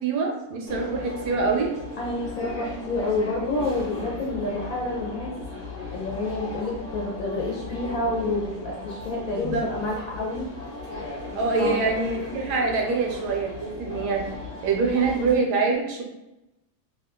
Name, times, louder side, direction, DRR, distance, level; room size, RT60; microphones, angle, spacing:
voice 1, 0.0-1.7 9.4-9.7 11.3-14.2 14.6-16.0, right 4 dB, 70° right, 0 dB, 1.1 m, -25 dB
sound 1, 0.7-15.4, left 2 dB, 40° left, 0.5 m, -37 dB
voice 2, 2.0-5.3 5.9-10.4 11.6-11.8, left 2 dB, 65° left, -3 dB, 0.9 m, -28 dB
2.9 x 2.3 x 3.5 m, 0.92 s
omnidirectional pair, 1.9 m